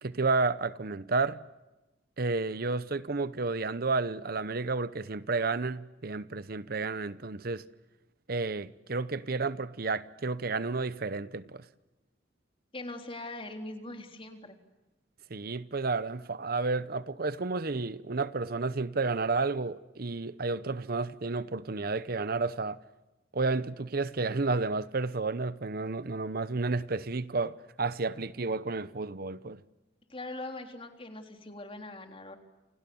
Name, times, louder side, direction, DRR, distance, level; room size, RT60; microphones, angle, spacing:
voice 1, 0.0-1.4 2.2-7.6 8.3-11.6 15.3-22.8 23.3-29.6, right 3 dB, 55° right, 0.9 m, -31 dB
voice 2, 12.7-14.6 30.1-32.4, left 2 dB, 30° left, 3.6 m, -41 dB
29.5 x 28.5 x 7.1 m
head